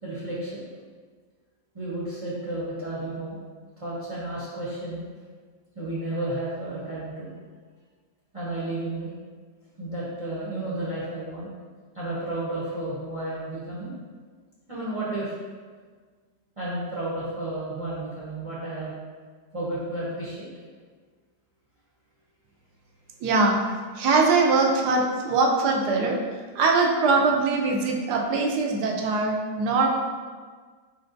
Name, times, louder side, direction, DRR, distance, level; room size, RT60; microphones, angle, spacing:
voice 1, 0.0-0.6 1.7-3.4 3.8-5.0 5.7-7.3 8.3-9.1 9.8-11.5 11.9-13.9 14.7-15.3 16.6-18.9 19.5-20.5, right 1 dB, 30° right, -8 dB, 0.6 m, -32 dB
voice 2, 23.2-23.6 23.9-26.2 26.5-29.9, right 3 dB, 75° right, 1 dB, 1.1 m, -22 dB
4.7 x 4.4 x 2.6 m, 1.5 s
omnidirectional pair, 1.9 m